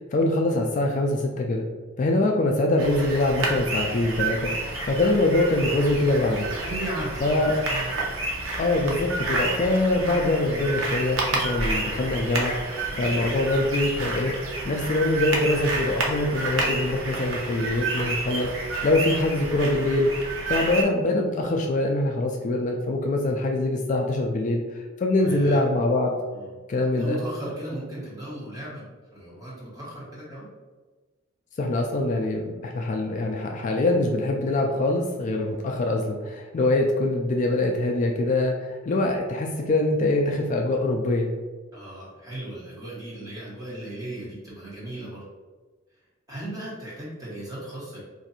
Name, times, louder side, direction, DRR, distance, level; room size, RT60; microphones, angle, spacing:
voice 1, 0.0-1.7 2.0-6.5 7.2-7.6 8.6-14.3 14.6-18.5 18.8-20.1 20.5-26.2 26.7-27.2 31.6-41.3, left 2 dB, 40° left, 2 dB, 0.3 m, -24 dB
sound 1, 2.8-20.8, right 2 dB, 85° right, 0.7 m, -30 dB
voice 2, 6.6-7.9 12.9-13.1 25.2-25.6 26.3-26.5 27.0-30.5 41.7-45.2 46.3-48.0, right 1 dB, 20° right, -8 dB, 1.3 m, -36 dB
2.6 x 2.5 x 4.1 m, 1.3 s
head